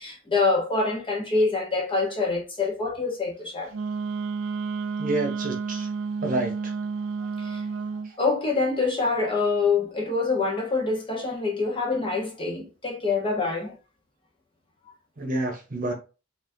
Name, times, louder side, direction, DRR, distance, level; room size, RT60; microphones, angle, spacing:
voice 1, 0.0-3.7 7.4-7.6 8.2-13.8, left 3 dB, 25° left, 1.1 m, -25 dB
Wind instrument woodwind instrument, 3.7-8.1, right 5 dB, 70° right, 0.4 m, -31 dB
voice 2, 5.0-5.9 6.2-6.7 15.2-15.9, right 2 dB, 40° right, 1.0 m, -28 dB
4.1 x 3.6 x 2.7 m
head